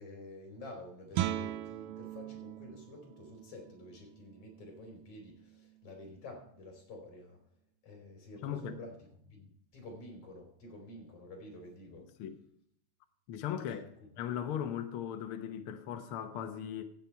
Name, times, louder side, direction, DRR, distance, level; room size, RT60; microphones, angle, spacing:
voice 1, 0.0-7.4 7.8-12.1 13.7-13.8, left 2 dB, 45° left, 4.2 m, -49 dB
Guitar, 1.1-6.7, right 12 dB, 90° right, 2.4 m, -41 dB
voice 2, 8.4-8.8 12.2-12.4 13.3-13.8 14.2-16.8, left 9 dB, 90° left, 1.2 m, -38 dB
15.5 x 7.1 x 4.5 m
omnidirectional pair, 3.9 m